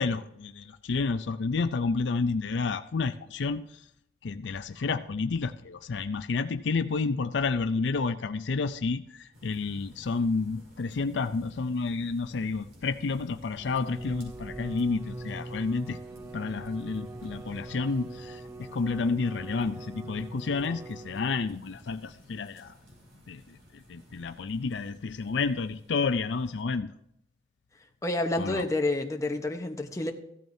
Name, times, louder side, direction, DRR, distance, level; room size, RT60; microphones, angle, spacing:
voice 1, 0.0-3.6 4.2-16.0 16.3-22.7 23.3-23.6 23.9-26.9 28.4-28.6, left 4 dB, 70° left, 11 dB, 0.5 m, -30 dB
sound 1, 9.3-26.6, equal, 60° right, 4.4 m, -52 dB
Bowed string instrument, 13.5-21.8, right 2 dB, 15° right, 0.3 m, -42 dB
voice 2, 28.0-30.1, left 2 dB, 15° left, 3 dB, 1.0 m, -29 dB
15.5 x 12.5 x 2.7 m, 0.75 s
head